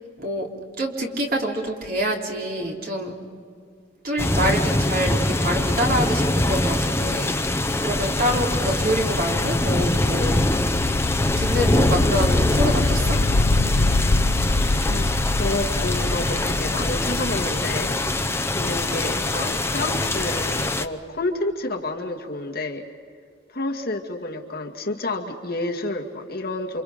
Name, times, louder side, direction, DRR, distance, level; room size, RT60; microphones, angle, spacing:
voice 1, 0.2-0.5 0.8-3.1 4.0-10.4 11.4-13.2, equal, 50° right, 0 dB, 3.5 m, -26 dB
sound 1, 4.2-20.9, left 1 dB, 15° left, 0.7 m, -24 dB
sound 2, 7.1-20.0, left 2 dB, 75° left, 0.7 m, -26 dB
voice 2, 14.9-18.0 18.6-22.8 23.5-26.8, left 2 dB, 50° left, 1 dB, 2.2 m, -29 dB
29.0 x 27.0 x 5.2 m, 2.2 s
head